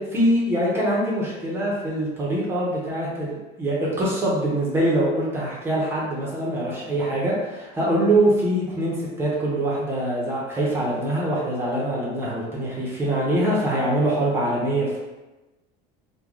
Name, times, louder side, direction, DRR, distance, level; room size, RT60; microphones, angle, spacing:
voice 1, 0.0-15.0, right 1 dB, 10° right, -5 dB, 0.7 m, -24 dB
3.1 x 2.2 x 3.7 m, 1.1 s
cardioid pair, 175°, 20 cm